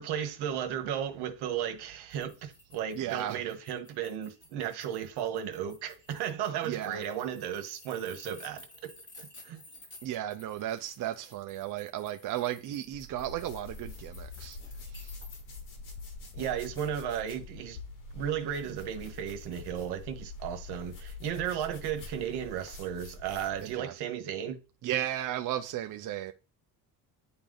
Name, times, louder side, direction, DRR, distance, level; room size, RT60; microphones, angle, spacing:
voice 1, 0.0-8.9 9.2-9.6 16.3-17.8 18.1-24.6, right 9 dB, 85° right, 1.5 m, -35 dB
sound 1, 2.1-15.4, left 2 dB, 30° left, 3.8 m, -54 dB
voice 2, 2.9-3.4 6.6-7.0 10.0-14.6 14.9-15.2 23.6-23.9 24.8-26.3, right 12 dB, 55° right, 0.6 m, -35 dB
sound 2, 12.9-23.8, left 3 dB, 55° left, 2.3 m, -45 dB
10.0 x 3.5 x 3.9 m
cardioid pair, 120°, 39 cm